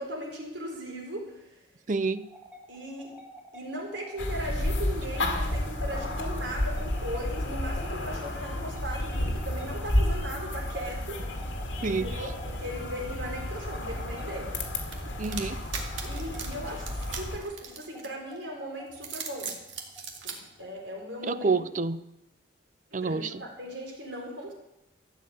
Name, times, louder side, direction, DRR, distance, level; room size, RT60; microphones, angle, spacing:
voice 1, 0.0-1.3 2.7-3.1 3.5-11.2 11.9-14.5 16.0-16.9 17.1-19.5 20.2-21.5 22.9-24.5, equal, 75° right, 0 dB, 4.1 m, -38 dB
voice 2, 1.9-2.2 11.8-12.1 15.2-15.6 21.3-22.0 22.9-23.4, right 4 dB, 40° right, 14 dB, 0.5 m, -28 dB
sound 1, 2.0-21.4, equal, 5° right, 1.6 m, -50 dB
sound 2, 4.2-17.4, left 1 dB, 85° left, 2.2 m, -31 dB
sound 3, 14.9-18.4 18.9-20.4, right 6 dB, 90° right, 2.1 m, -38 dB
13.0 x 7.4 x 8.6 m, 0.92 s
head